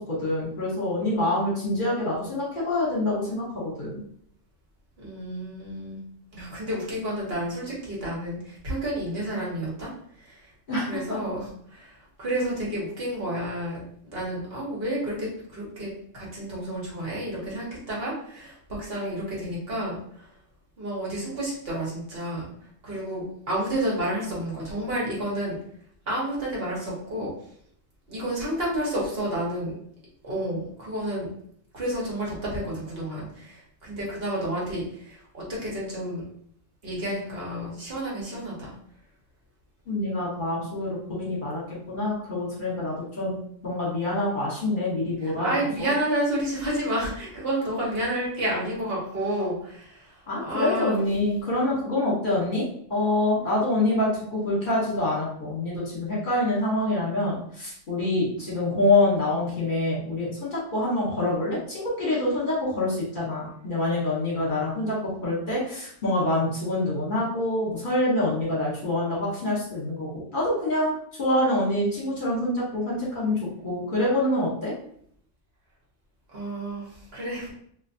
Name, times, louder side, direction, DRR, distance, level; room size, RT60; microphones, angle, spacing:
voice 1, 0.1-4.0 10.7-10.8 11.1-11.2 39.9-41.6 41.9-43.4 43.6-45.9 50.3-52.6 52.9-70.9 71.2-74.7, left 1 dB, 45° left, -6 dB, 1.2 m, -26 dB
voice 2, 5.0-6.0 6.3-9.9 10.2-10.5 10.8-20.3 20.8-22.5 22.8-25.6 26.1-27.3 28.1-29.7 30.2-31.3 31.7-36.2 36.8-38.7 45.2-51.0 76.3-77.5, right 1 dB, 55° right, -5 dB, 1.3 m, -30 dB
3.1 x 2.6 x 2.7 m, 0.65 s
omnidirectional pair, 1.2 m